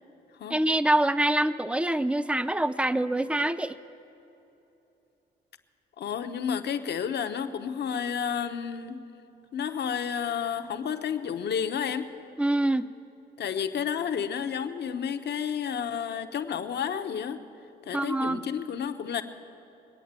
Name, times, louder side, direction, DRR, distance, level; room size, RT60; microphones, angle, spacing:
voice 1, 0.5-3.7 12.4-12.9 17.9-18.4, right 1 dB, 5° right, 13 dB, 0.6 m, -25 dB
voice 2, 6.0-9.0 9.5-12.1 13.4-17.4 17.8-19.2, left 7 dB, 60° left, 9 dB, 0.9 m, -31 dB
21.5 x 8.6 x 7.5 m, 2.9 s
cardioid pair, 75°, 20 cm